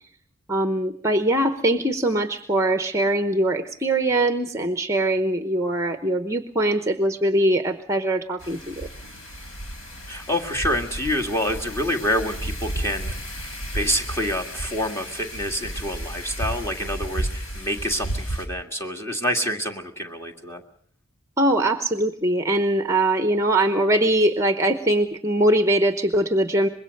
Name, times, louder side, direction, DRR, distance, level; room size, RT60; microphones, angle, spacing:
voice 1, 0.5-8.9 21.4-26.7, right 1 dB, 15° right, 8 dB, 0.9 m, -22 dB
Wind, 8.4-18.4, right 1 dB, 85° left, 4.5 m, -33 dB
voice 2, 10.1-20.6, equal, 15° left, 2 dB, 1.9 m, -27 dB
25.0 x 21.5 x 6.6 m, 0.63 s
head